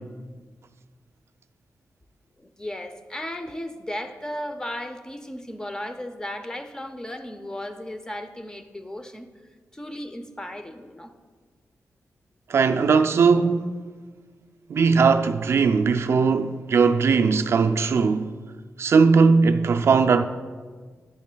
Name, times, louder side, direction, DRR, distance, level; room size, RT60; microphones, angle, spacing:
voice 1, 2.4-9.3 9.7-11.1, left 1 dB, 15° left, 0.5 m, -35 dB
voice 2, 12.5-13.7 14.7-18.3 18.8-20.2, right 5 dB, 55° right, 0.3 m, -19 dB
11.0 x 10.5 x 2.2 m
wide cardioid pair, 160°, 5 cm